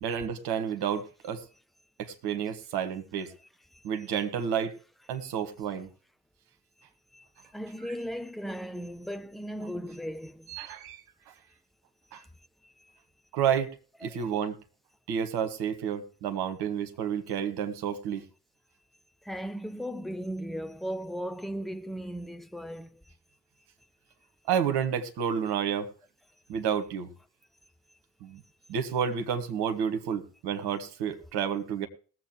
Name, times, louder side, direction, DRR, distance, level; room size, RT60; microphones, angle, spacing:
voice 1, 0.0-1.4 2.0-3.3 3.8-4.7 5.1-5.9 10.5-11.0 12.1-12.2 13.3-13.7 14.0-14.5 15.1-18.2 24.5-25.9 26.5-27.1 28.2-28.4 28.7-31.9, right 8 dB, 60° right, 1.4 m, -30 dB
voice 2, 7.5-10.6 14.0-14.2 19.2-23.0, equal, ahead, 0.6 m, -37 dB
21.0 x 7.6 x 3.2 m
figure-of-eight pair, 45°, 44 cm